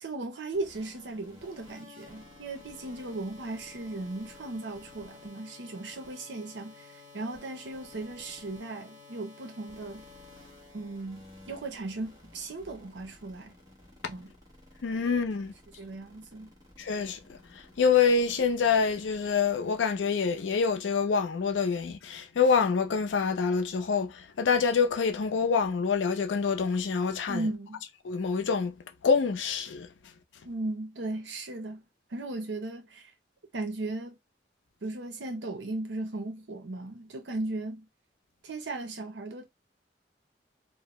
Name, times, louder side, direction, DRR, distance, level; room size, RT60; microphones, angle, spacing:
voice 1, 0.0-10.0 10.7-13.5 14.1-14.3 15.8-16.5 27.3-27.8 30.4-31.8 32.1-33.1 33.5-34.2 34.8-37.9 38.4-39.4, right 2 dB, 70° right, 0.6 m, -37 dB
sound 1, 0.5-20.0, left 3 dB, 20° right, 1.1 m, -53 dB
voice 2, 14.8-15.5 16.8-17.4 17.8-27.4 28.1-28.7 29.0-29.9, left 5 dB, 85° left, 0.4 m, -26 dB
2.6 x 2.0 x 3.0 m
head